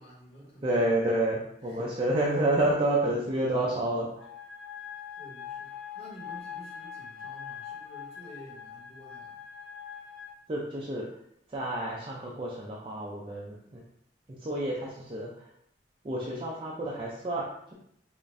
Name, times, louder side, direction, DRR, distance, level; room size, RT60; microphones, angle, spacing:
voice 1, 0.0-0.9 1.6-2.0 5.1-9.4, right 1 dB, 35° left, -6 dB, 1.4 m, -50 dB
voice 2, 0.6-4.3 10.5-11.1 11.5-13.8 14.4-15.3 16.0-17.4, right 1 dB, 30° right, -4 dB, 0.4 m, -29 dB
sound 1, 4.2-10.3, left 8 dB, 65° left, 0.6 m, -42 dB
5.0 x 2.5 x 2.5 m, 0.73 s
head